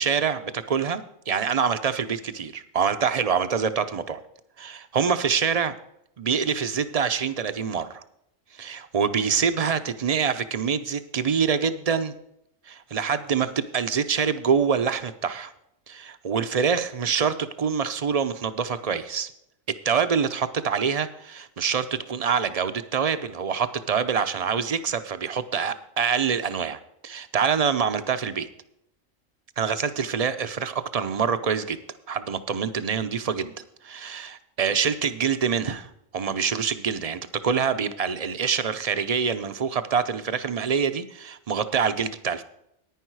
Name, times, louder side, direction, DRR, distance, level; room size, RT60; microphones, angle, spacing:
voice 1, 0.0-4.2 4.6-5.7 6.2-8.0 8.5-12.1 12.7-15.5 15.9-19.3 19.7-28.5 29.6-31.8 32.1-33.5 33.8-42.4, right 6 dB, 45° right, 11 dB, 0.5 m, -25 dB
10.5 x 10.0 x 4.6 m, 0.78 s
omnidirectional pair, 1.4 m